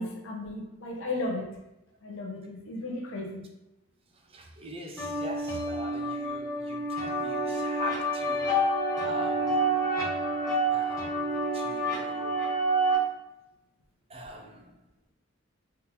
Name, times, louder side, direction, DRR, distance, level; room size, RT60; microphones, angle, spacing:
voice 1, 0.0-1.5 2.0-3.4, left 2 dB, 65° left, 0 dB, 0.6 m, -34 dB
voice 2, 4.1-8.6 9.0-9.7 10.7-12.6 14.1-14.8, right 1 dB, 30° right, 2 dB, 0.4 m, -43 dB
sound 1, 5.0-13.0, right 1 dB, 15° left, 1.0 m, -28 dB
3.5 x 2.4 x 2.9 m, 0.91 s
head